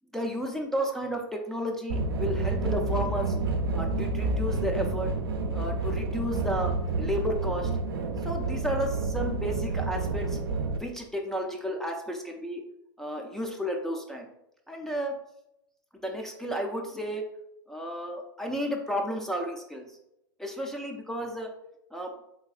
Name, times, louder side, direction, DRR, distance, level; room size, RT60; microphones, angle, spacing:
voice 1, 0.1-3.4 3.7-5.1 5.5-7.7 8.2-10.4 10.8-12.6 13.0-14.3 14.7-15.2 16.0-17.2 17.7-19.9 20.4-21.5 21.9-22.1, equal, 5° left, 2 dB, 0.3 m, -32 dB
sound 1, 1.9-10.8, right 3 dB, 80° right, 0.4 m, -29 dB
3.2 x 2.6 x 2.4 m, 0.81 s
hypercardioid pair, 115°, 12 cm